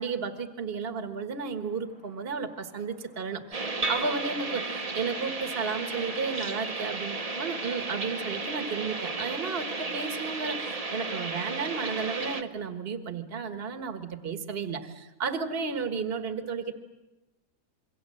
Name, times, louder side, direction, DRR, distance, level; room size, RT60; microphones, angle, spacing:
voice 1, 0.0-16.7, right 5 dB, 45° right, 8 dB, 1.6 m, -33 dB
sound 1, 1.4-10.5, left 2 dB, 65° left, 4.3 m, -57 dB
sound 2, 3.5-12.4, right 3 dB, 25° right, 1.1 m, -34 dB
27.5 x 22.5 x 7.7 m, 1.1 s
omnidirectional pair, 1.5 m